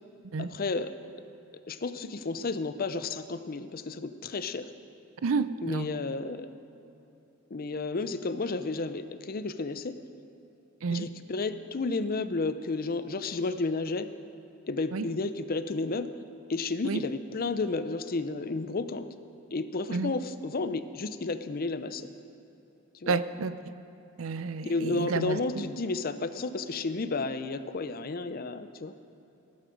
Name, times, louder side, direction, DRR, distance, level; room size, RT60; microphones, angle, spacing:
voice 1, 0.4-0.9 1.7-4.7 5.6-6.5 7.5-10.0 10.9-14.1 14.7-16.1 16.5-19.1 19.5-22.1 23.0-23.2 24.6-28.9, left 3 dB, 45° left, 12 dB, 0.6 m, -32 dB
voice 2, 5.2-5.9 10.8-11.1 14.9-15.1 16.8-17.0 19.9-20.1 23.1-23.5 24.2-25.4, right 4 dB, 90° right, 14 dB, 0.5 m, -30 dB
15.0 x 12.0 x 5.1 m, 2.9 s
head